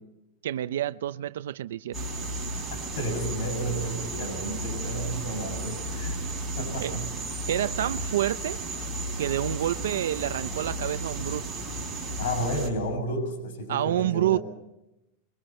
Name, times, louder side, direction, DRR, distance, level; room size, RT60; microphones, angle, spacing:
voice 1, 0.4-2.0 6.8-6.9 7.5-8.6 9.2-11.5 13.7-14.4, right 12 dB, 90° right, 13 dB, 0.7 m, -28 dB
sound 1, 1.9-12.7, right 2 dB, 5° right, 5.1 m, -33 dB
voice 2, 2.7-6.2 6.6-7.1 12.2-14.4, right 1 dB, 65° left, 6 dB, 6.9 m, -32 dB
28.0 x 23.0 x 4.5 m, 0.89 s
supercardioid pair, 175°, 0 cm